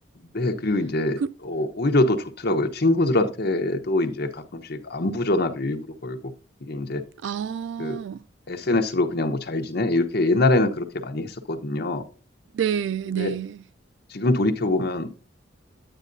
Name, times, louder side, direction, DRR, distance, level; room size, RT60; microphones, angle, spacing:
voice 1, 0.3-6.3 6.6-7.0 7.8-8.0 8.5-12.0 13.2-13.3 14.1-15.1, left 2 dB, 55° left, 1.0 m, -24 dB
voice 2, 7.2-8.2 12.5-13.6, right 8 dB, 65° right, 0.3 m, -28 dB
10.5 x 8.9 x 2.7 m
head